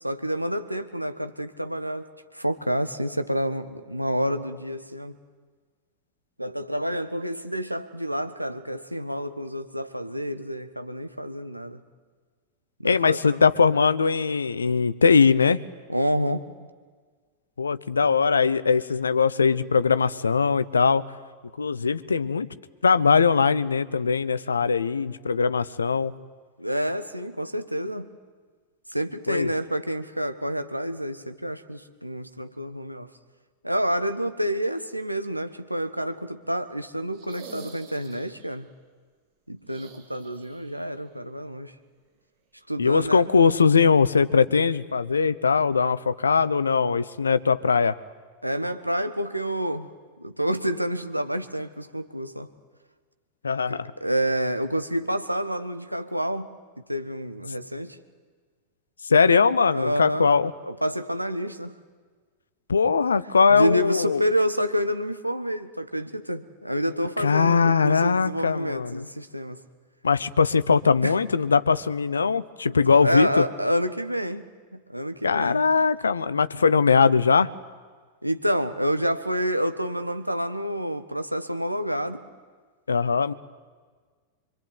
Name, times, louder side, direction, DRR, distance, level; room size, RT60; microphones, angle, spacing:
voice 1, 0.0-2.1 2.3-5.2 6.4-11.8 12.8-13.4 15.9-16.4 26.6-28.1 28.9-33.1 33.6-38.7 39.5-41.7 42.7-43.3 48.4-49.9 50.2-52.5 53.7-56.5 56.9-58.0 59.7-60.3 60.6-61.7 63.5-69.6 71.0-71.2 72.7-74.5 74.7-75.6 78.2-82.2, equal, 90° right, 9 dB, 1.3 m, -28 dB
voice 2, 12.8-15.6 17.6-21.0 21.6-22.5 22.8-26.1 29.3-29.5 42.8-48.0 53.4-53.9 59.1-60.5 62.7-64.2 67.2-69.0 70.0-73.4 75.2-77.5 82.9-83.3, left 5 dB, 75° left, 16 dB, 0.9 m, -21 dB
sound 1, 37.1-38.5 39.6-40.8 41.1-41.2 42.8-42.9, right 5 dB, 40° right, 4.3 m, -46 dB
25.0 x 24.5 x 9.5 m, 1.5 s
figure-of-eight pair, 90°, 0 cm